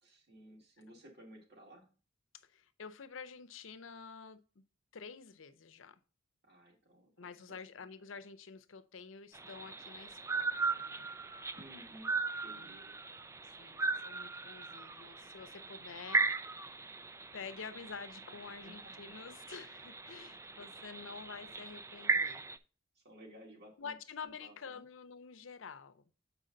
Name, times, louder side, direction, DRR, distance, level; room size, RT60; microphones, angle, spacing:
voice 1, 0.0-1.9 6.4-7.8 11.6-12.1 12.4-13.0 18.3-19.1 22.9-24.0 24.2-24.8, equal, 60° right, 2.1 m, -56 dB
voice 2, 2.3-4.6 4.9-6.0 7.2-11.1 12.5-12.7 13.4-16.3 17.3-22.5 23.8-26.0, left 5 dB, 85° left, 0.6 m, -49 dB
sound 1, 9.3-22.6, right 4 dB, 15° right, 0.3 m, -38 dB
7.5 x 4.9 x 3.9 m
head